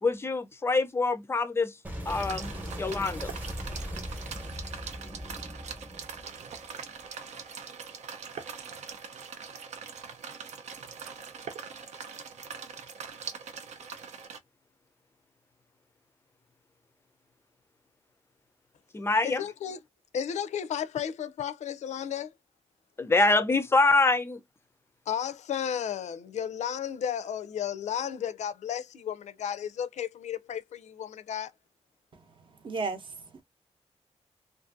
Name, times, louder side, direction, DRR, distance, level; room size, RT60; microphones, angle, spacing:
voice 1, 0.0-1.8 2.1-3.3 18.9-19.5 23.0-24.4, left 3 dB, 20° left, 0.4 m, -25 dB
Boom, 1.8-7.1, equal, 15° right, 0.8 m, -39 dB
sound 1, 2.1-14.4, right 6 dB, 85° right, 0.6 m, -42 dB
voice 2, 19.2-19.8 20.1-22.3 25.1-31.5, left 9 dB, 90° left, 0.4 m, -33 dB
voice 3, 32.1-33.4, right 4 dB, 45° right, 0.7 m, -36 dB
2.6 x 2.5 x 2.4 m
wide cardioid pair, 175°, 12 cm